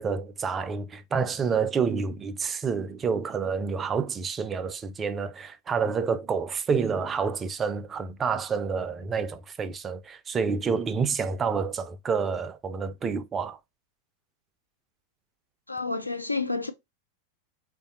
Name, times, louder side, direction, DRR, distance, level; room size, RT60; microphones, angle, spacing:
voice 1, 0.0-13.6, right 5 dB, 20° right, 0.4 m, -28 dB
voice 2, 15.7-16.7, left 3 dB, 85° left, 0.4 m, -29 dB
3.3 x 2.5 x 2.6 m
figure-of-eight pair, 90°, 0 cm